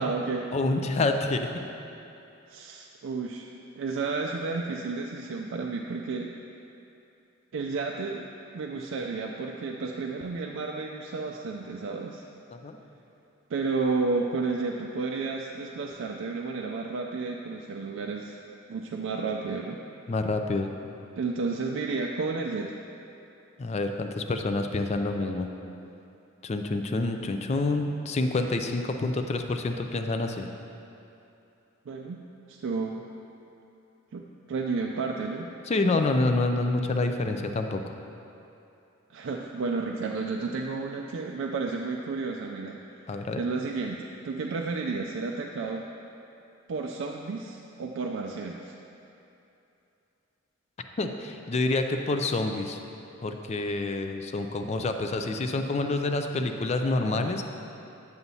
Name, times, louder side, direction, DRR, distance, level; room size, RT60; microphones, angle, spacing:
voice 1, 0.0-0.5 2.5-3.5 3.8-6.3 7.5-8.3 8.5-12.2 13.5-18.4 18.7-19.8 21.2-22.7 31.9-33.0 34.1-35.5 39.1-45.8 46.7-48.7, right 4 dB, 65° right, 1 dB, 0.4 m, -32 dB
voice 2, 0.5-1.5 12.5-12.8 20.1-20.7 23.6-25.5 26.4-30.5 35.7-37.8 43.1-43.4 51.0-52.8 53.2-57.4, left 2 dB, 35° left, 5 dB, 0.4 m, -27 dB
9.2 x 7.0 x 2.7 m, 2.8 s
head